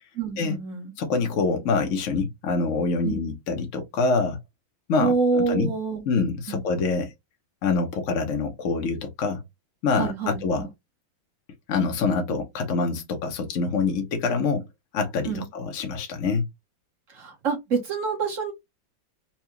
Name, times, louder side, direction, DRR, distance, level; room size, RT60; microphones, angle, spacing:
voice 1, 0.2-0.9 3.0-3.2 5.0-6.0 6.5-6.6 10.0-10.7 15.3-15.4 17.1-18.5, right 4 dB, 45° right, 1.3 m, -26 dB
voice 2, 1.0-4.4 4.9-5.7 6.1-7.1 7.6-9.4 9.8-10.7 11.7-14.6 14.9-16.5, left 4 dB, 60° left, 0.8 m, -25 dB
4.4 x 2.3 x 2.9 m
omnidirectional pair, 2.1 m